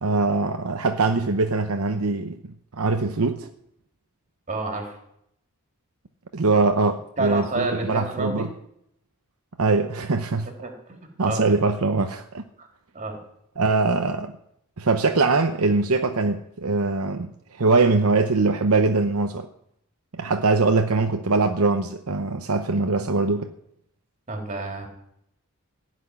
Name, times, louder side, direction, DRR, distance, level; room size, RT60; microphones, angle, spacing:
voice 1, 0.0-2.4 2.8-3.5 6.3-8.5 9.6-10.5 11.2-12.4 13.6-14.3 14.8-17.3 17.6-19.5 20.1-23.5, right 3 dB, 75° right, 6 dB, 0.9 m, -22 dB
voice 2, 4.5-4.9 7.2-8.5 10.6-11.0 11.2-11.4 12.6-12.7 12.9-13.2 24.3-24.9, right 2 dB, 35° right, 2 dB, 3.5 m, -29 dB
16.0 x 6.2 x 9.9 m, 0.74 s
head